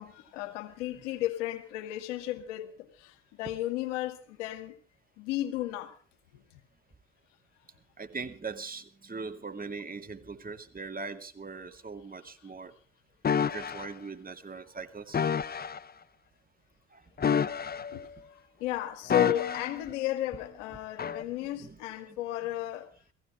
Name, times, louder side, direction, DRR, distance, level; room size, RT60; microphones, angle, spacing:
voice 1, 0.0-4.8 5.2-6.0 6.3-6.4 17.4-18.1 18.6-22.9, left 14 dB, 80° left, 1.8 m, -34 dB
voice 2, 8.0-12.7 13.4-15.2 16.9-17.0 17.3-17.5 21.2-21.8 22.1-22.2, right 4 dB, 25° right, 2.4 m, -41 dB
sound 1, 13.2-13.9 15.1-15.8 17.2-18.1 19.1-19.8 21.0-21.2, left 7 dB, 25° left, 0.8 m, -29 dB
18.0 x 15.5 x 5.0 m
hypercardioid pair, 60°, 36 cm